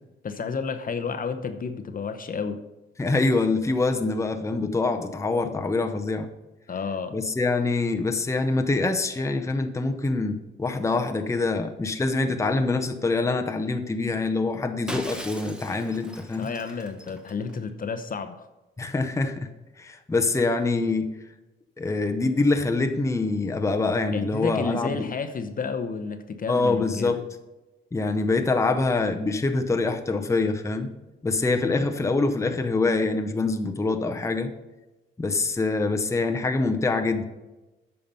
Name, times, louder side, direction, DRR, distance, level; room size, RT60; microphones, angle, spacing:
voice 1, 0.2-2.6 6.7-7.2 16.4-18.5 24.1-27.2, left 5 dB, 40° left, 7 dB, 0.8 m, -31 dB
voice 2, 3.0-6.3 7.1-16.5 18.8-19.5 19.8-21.1 21.8-25.1 26.5-27.2 27.9-30.9 31.2-34.5 35.2-37.2, left 3 dB, 15° left, 5 dB, 0.7 m, -25 dB
Shatter, 14.9-17.6, equal, 5° right, 1.1 m, -39 dB
9.0 x 5.7 x 5.4 m, 1.1 s
cardioid pair, 100°, 21 cm